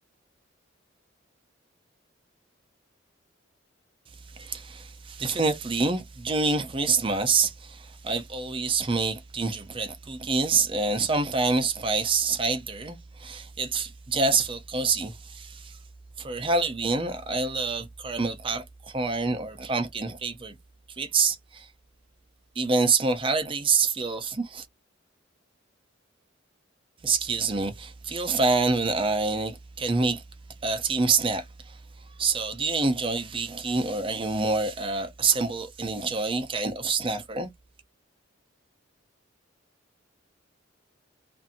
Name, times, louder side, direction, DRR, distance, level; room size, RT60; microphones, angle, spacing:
voice 1, 4.3-15.8 16.2-20.6 21.0-21.7 22.6-24.7 27.0-30.2 30.6-31.8 32.2-37.5, right 4 dB, 25° right, 0.5 m, -26 dB
2.7 x 2.6 x 2.5 m
head